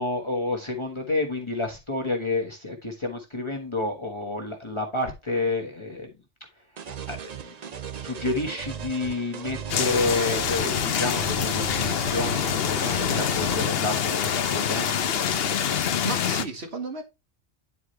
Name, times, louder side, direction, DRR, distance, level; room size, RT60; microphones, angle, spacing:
voice 1, 0.0-6.1 6.9-7.5 8.0-14.9, left 2 dB, 25° left, 1.4 m, -29 dB
sound 1, 6.8-13.6, right 7 dB, 45° right, 0.6 m, -37 dB
sound 2, 9.7-16.4, left 8 dB, 60° left, 0.9 m, -25 dB
voice 2, 15.6-17.0, right 4 dB, 65° right, 2.1 m, -35 dB
9.8 x 4.9 x 3.2 m
omnidirectional pair, 1.2 m